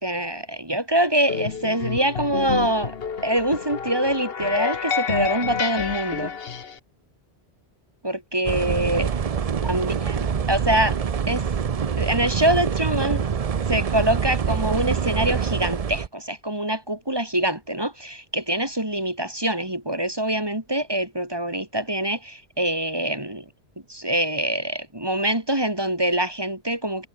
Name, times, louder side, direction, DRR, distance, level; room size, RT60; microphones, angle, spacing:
voice 1, 0.0-3.0 3.2-6.3 8.0-9.1 9.6-11.0 11.3-11.5 12.0-13.2 13.7-23.5 23.9-27.1, right 1 dB, 25° right, 3.2 m, -24 dB
sound 1, 1.3-6.8, left 6 dB, 65° left, 1.5 m, -29 dB
sound 2, 8.5-16.1, right 7 dB, 40° right, 0.7 m, -25 dB
omnidirectional pair, 1.1 m